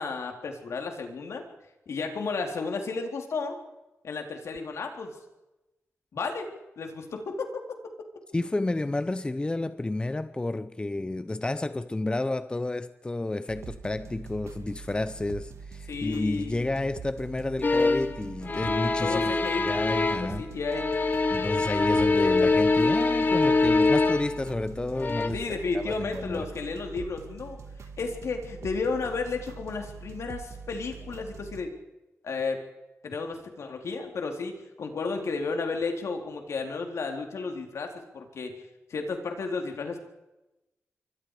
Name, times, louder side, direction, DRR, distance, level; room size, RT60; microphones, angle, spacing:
voice 1, 0.0-1.4 1.9-3.6 4.0-5.2 6.1-6.5 6.8-7.5 15.9-16.6 19.0-19.7 20.1-20.9 25.3-27.6 28.0-31.8 32.2-32.6 33.0-38.5 38.9-40.0, left 4 dB, 75° left, 4.0 m, -33 dB
voice 2, 8.3-20.5 21.3-25.4 25.7-26.5, left 2 dB, 20° left, 0.8 m, -31 dB
sound 1, 13.5-31.6, right 5 dB, 85° right, 1.8 m, -43 dB
sound 2, 17.6-18.2 18.4-20.4 20.6-24.4 24.9-25.3, left 3 dB, 40° left, 1.9 m, -24 dB
27.0 x 23.5 x 5.0 m
wide cardioid pair, 95°, 5 cm